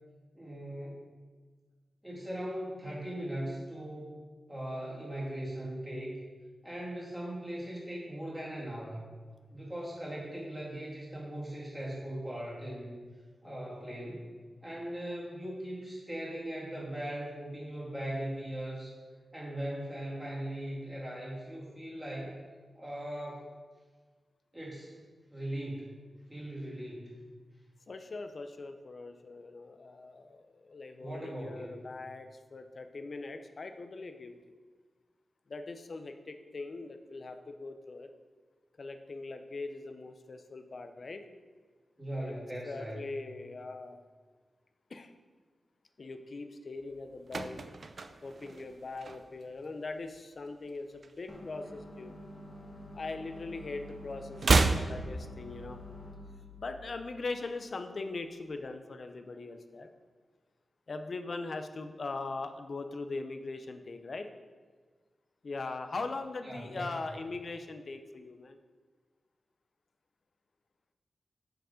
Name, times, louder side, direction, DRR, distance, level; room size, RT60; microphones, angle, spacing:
voice 1, 0.3-1.1 2.0-4.2 4.5-6.2 6.6-9.1 9.5-13.0 13.4-14.3 14.6-18.9 19.3-22.4 22.8-23.4 24.5-25.0 25.3-26.0 26.3-27.2 31.0-31.9 42.0-43.1 66.4-67.2, right 1 dB, 5° right, -6 dB, 2.1 m, -39 dB
voice 2, 27.9-34.4 35.5-38.1 38.8-41.2 42.2-42.3 42.7-44.0 44.9-45.1 46.0-47.6 48.2-52.2 52.9-55.8 56.6-59.9 60.9-64.3 65.4-68.6, left 3 dB, 50° left, 8 dB, 0.5 m, -41 dB
sound 1, 46.9-49.6 49.9-50.2 50.5-51.9 52.2-53.6 53.8-55.9 56.2-56.3, right 3 dB, 50° right, 0.4 m, -31 dB
sound 2, 51.3-58.4, left 1 dB, 20° left, 0.9 m, -49 dB
6.3 x 4.7 x 5.0 m, 1.4 s
wide cardioid pair, 130°, 0 cm